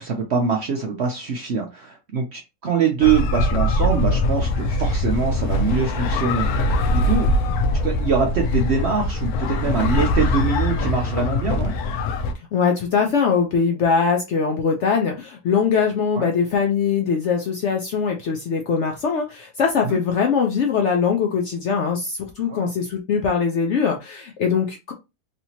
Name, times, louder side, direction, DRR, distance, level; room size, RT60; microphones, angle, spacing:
voice 1, 0.0-7.3 7.8-11.7 16.1-16.3 19.8-20.0 22.5-22.7, right 6 dB, 75° right, 2 dB, 0.6 m, -23 dB
sound 1, 3.0-12.3, left 2 dB, 70° left, 1.0 m, -22 dB
voice 2, 12.5-24.9, left 6 dB, 90° left, 2 dB, 0.6 m, -21 dB
3.2 x 2.9 x 2.7 m, 0.25 s
omnidirectional pair, 1.9 m